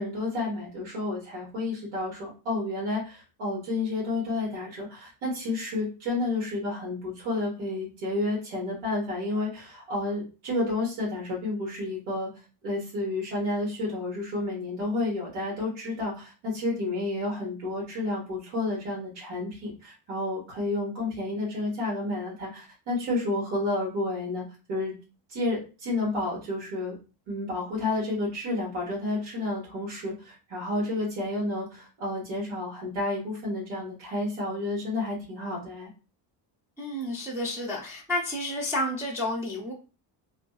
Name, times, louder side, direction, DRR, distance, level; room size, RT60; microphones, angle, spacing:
voice 1, 0.0-12.3 12.6-24.4 24.7-24.9 25.3-26.9 27.3-35.9, left 2 dB, 80° right, -5 dB, 1.3 m, -30 dB
voice 2, 36.8-39.7, left 1 dB, 5° right, -4 dB, 0.3 m, -30 dB
2.6 x 2.3 x 2.3 m, 0.33 s
cardioid pair, 140°, 46 cm